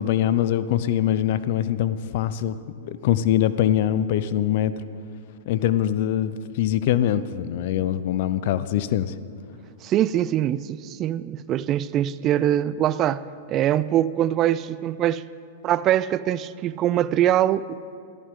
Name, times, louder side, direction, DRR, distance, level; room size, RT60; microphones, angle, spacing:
voice 1, 0.0-2.5 2.8-4.7 5.5-9.2, left 11 dB, 55° left, 0.7 m, -23 dB
voice 2, 9.8-13.2 13.5-15.2 15.6-18.0, right 11 dB, 35° right, 0.4 m, -23 dB
24.5 x 14.5 x 3.8 m
hypercardioid pair, 115°, 0 cm